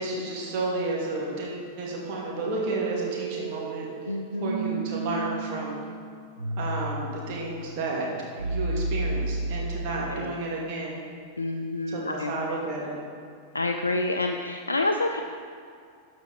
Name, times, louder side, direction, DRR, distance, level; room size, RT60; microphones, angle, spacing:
voice 1, 0.0-3.9 4.4-5.8 6.6-8.1 8.4-11.0 11.9-12.9, right 2 dB, 45° right, -4 dB, 2.3 m, -31 dB
sound 1, 2.4-10.3, right 3 dB, 80° right, 0.9 m, -33 dB
voice 2, 4.1-4.8 10.0-10.4 11.4-12.3 13.5-15.2, left 2 dB, 80° left, 4 dB, 0.4 m, -28 dB
12.5 x 5.2 x 4.1 m, 2.2 s
figure-of-eight pair, 90°, 0 cm